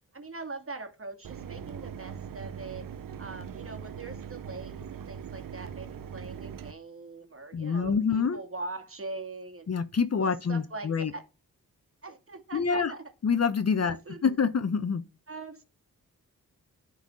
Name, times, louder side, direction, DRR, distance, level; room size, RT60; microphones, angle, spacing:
voice 1, 0.1-2.9 3.2-9.7 10.2-11.2 12.0-13.0 13.9-14.3 15.3-15.6, right 3 dB, 40° right, 2.3 m, -42 dB
Mechanisms, 1.2-6.7, right 8 dB, 65° right, 0.7 m, -41 dB
voice 2, 7.5-8.4 9.7-11.1 12.5-12.9 13.2-14.0 14.2-15.0, left 6 dB, 45° left, 0.8 m, -26 dB
10.0 x 4.2 x 6.2 m
cardioid pair, 45°, 35 cm